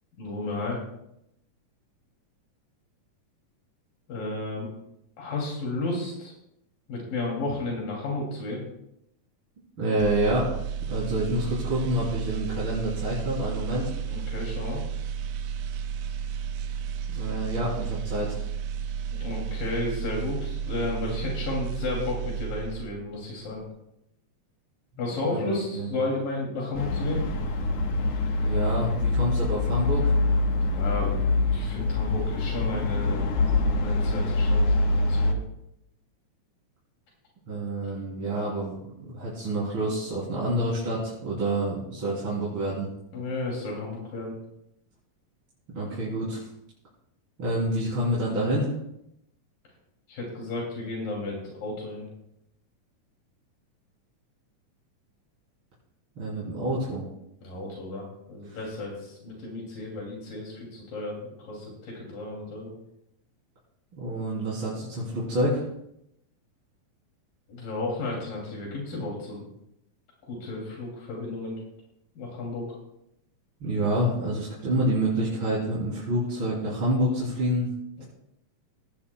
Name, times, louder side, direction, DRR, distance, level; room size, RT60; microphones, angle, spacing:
voice 1, 0.2-0.8 4.1-4.7 5.2-6.3 6.9-8.6 14.1-14.8 19.2-23.6 25.0-27.2 30.6-31.1 31.5-35.4 43.1-44.4 50.1-52.1 57.4-62.7 67.5-69.4 70.3-71.6 72.2-72.7 78.0-78.1, left 2 dB, 85° left, -2 dB, 4.5 m, -33 dB
voice 2, 9.8-10.5 10.9-13.9 17.1-18.4 25.2-25.9 28.3-30.1 37.5-42.9 45.7-46.4 47.4-48.7 56.2-57.0 58.5-58.6 63.9-65.6 73.6-77.7, right 1 dB, 40° right, -8 dB, 3.7 m, -28 dB
sound 1, 10.0-23.1 23.4-23.7, right 8 dB, 80° right, 1.5 m, -32 dB
sound 2, 26.7-35.3, left 2 dB, 60° left, 1.9 m, -25 dB
17.5 x 15.5 x 2.3 m, 0.79 s
omnidirectional pair, 3.8 m